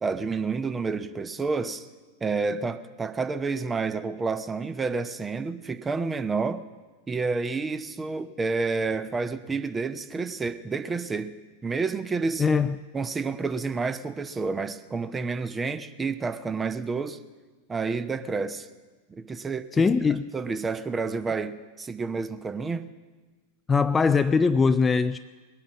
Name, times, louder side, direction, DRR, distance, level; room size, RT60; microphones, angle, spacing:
voice 1, 0.0-1.9 2.2-6.6 7.1-11.3 11.6-12.5 12.9-17.2 17.7-18.7 19.1-19.8 20.3-22.9, right 4 dB, 15° right, 11 dB, 0.8 m, -29 dB
voice 2, 12.4-12.8 19.7-20.3 23.7-25.2, left 5 dB, 15° left, 12 dB, 0.4 m, -21 dB
21.0 x 8.9 x 7.4 m, 1.3 s
figure-of-eight pair, 90°, 0 cm